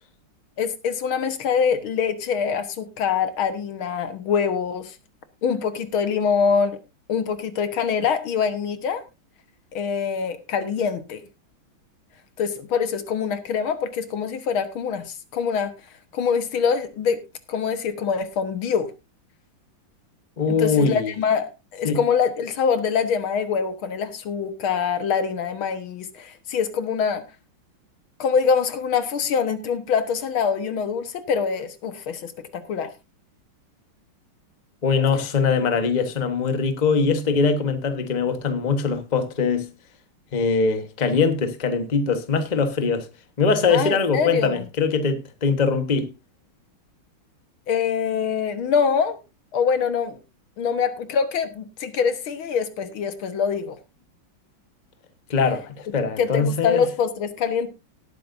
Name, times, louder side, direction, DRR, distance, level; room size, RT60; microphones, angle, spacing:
voice 1, 0.6-5.0 5.4-6.8 7.1-9.0 9.7-11.2 12.4-15.8 16.1-17.2 17.5-18.9 20.6-27.2 28.2-32.9 43.7-44.7 47.7-49.2 49.5-50.2 50.6-53.8 56.2-57.7, left 6 dB, 80° left, 2.1 m, -24 dB
voice 2, 20.4-21.1 21.8-22.0 34.8-39.7 40.3-43.1 43.4-46.1 55.3-56.8, left 5 dB, 25° left, 1.2 m, -22 dB
18.5 x 9.2 x 2.6 m
omnidirectional pair, 2.3 m